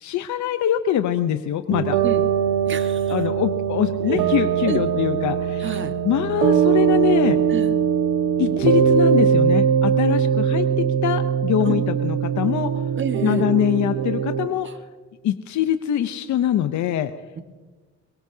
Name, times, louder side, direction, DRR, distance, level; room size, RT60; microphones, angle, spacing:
voice 1, 0.0-2.0 3.1-5.7 6.0-7.4 8.4-12.7 13.2-14.7 15.2-17.1, left 11 dB, 70° left, 9 dB, 0.8 m, -23 dB
sound 1, 1.7-14.5, right 8 dB, 85° right, 1.3 m, -21 dB
voice 2, 2.7-3.1 4.6-4.8 5.6-5.9 7.5-7.7 11.6-11.8 13.0-13.5 14.6-14.7, right 6 dB, 40° right, 6 dB, 1.6 m, -29 dB
23.5 x 21.5 x 2.8 m, 1.3 s
cardioid pair, 90°, 30 cm